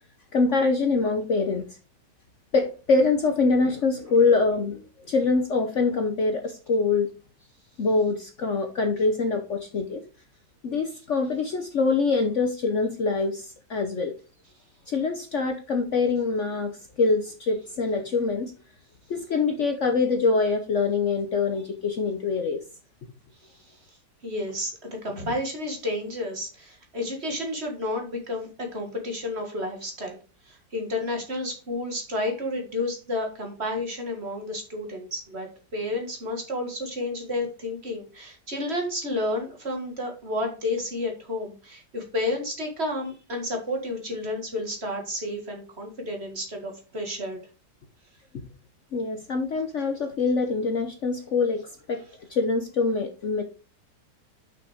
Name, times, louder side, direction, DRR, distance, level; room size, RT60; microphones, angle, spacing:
voice 1, 0.3-1.7 2.5-4.8 5.1-7.1 7.8-10.0 10.6-14.2 14.9-16.7 17.0-18.5 19.1-22.6 48.9-51.6 51.9-52.0 52.3-53.4, left 4 dB, 50° left, 6 dB, 1.0 m, -24 dB
voice 2, 23.5-24.0 24.2-30.2 30.5-35.5 35.7-47.4, left 1 dB, 40° right, 3 dB, 2.0 m, -31 dB
6.0 x 5.9 x 4.9 m, 0.34 s
omnidirectional pair, 1.9 m